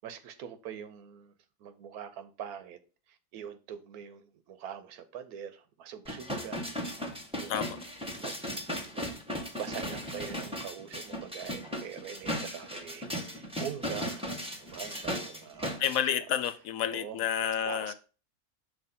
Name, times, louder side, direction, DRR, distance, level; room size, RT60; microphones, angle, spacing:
voice 1, 0.0-1.3 1.6-2.8 3.1-7.7 8.2-8.4 8.9-9.2 9.5-14.3 14.6-15.8 16.9-17.3 17.6-17.9, right 8 dB, 90° right, 1.2 m, -43 dB
sound 1, 6.0-16.0 16.4-16.5, equal, 5° right, 0.8 m, -37 dB
voice 2, 15.8-17.9, left 9 dB, 75° left, 1.0 m, -30 dB
5.8 x 3.2 x 5.5 m
omnidirectional pair, 1.6 m